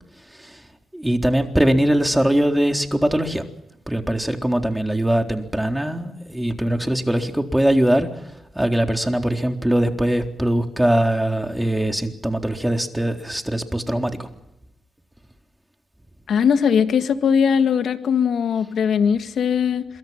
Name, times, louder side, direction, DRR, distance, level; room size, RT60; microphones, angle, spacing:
voice 1, 0.9-3.5 3.9-8.1 8.6-14.3, right 1 dB, 10° right, 4 dB, 3.9 m, -21 dB
voice 2, 16.3-19.9, left 7 dB, 70° left, 9 dB, 1.8 m, -19 dB
27.0 x 23.0 x 5.9 m, 0.92 s
supercardioid pair, 50°, 0 cm